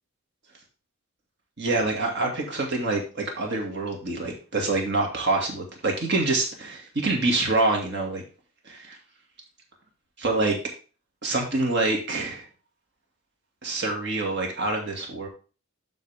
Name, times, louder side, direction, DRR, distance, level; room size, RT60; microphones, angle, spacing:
voice 1, 1.6-8.2 8.7-9.0 10.2-10.6 11.2-12.4 13.6-15.3, right 2 dB, 50° right, 0 dB, 2.2 m, -26 dB
11.5 x 4.3 x 3.6 m, 0.35 s
head